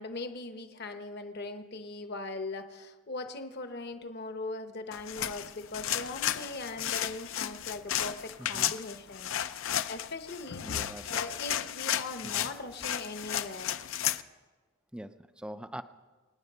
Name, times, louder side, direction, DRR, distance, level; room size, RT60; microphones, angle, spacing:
voice 1, 0.0-10.8 11.1-13.7, left 2 dB, 50° left, 8 dB, 0.9 m, -40 dB
sound 1, 4.9-14.2, left 11 dB, 65° left, 0.5 m, -33 dB
voice 2, 8.4-8.7 10.6-11.2 12.4-12.5 14.9-15.8, right 1 dB, 5° right, 11 dB, 0.4 m, -43 dB
25.5 x 9.8 x 5.5 m, 1.3 s
head